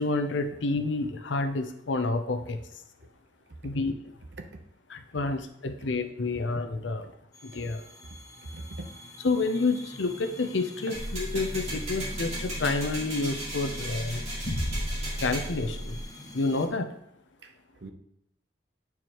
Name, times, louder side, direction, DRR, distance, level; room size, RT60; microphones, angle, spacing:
voice 1, 0.0-2.6 3.6-3.9 4.9-7.1 7.4-7.8 9.2-14.2 15.2-16.0 16.3-16.9, left 3 dB, 90° left, 8 dB, 0.7 m, -29 dB
sound 1, 7.3-16.7, left 1 dB, 20° left, 0.8 m, -45 dB
voice 2, 8.1-8.9 17.4-17.9, right 2 dB, 70° right, 5 dB, 0.7 m, -43 dB
sound 2, 10.9-16.0, equal, 40° left, 1.3 m, -35 dB
sound 3, 10.9-15.5, right 1 dB, 35° right, 2.5 m, -37 dB
8.6 x 4.7 x 3.0 m, 0.80 s
head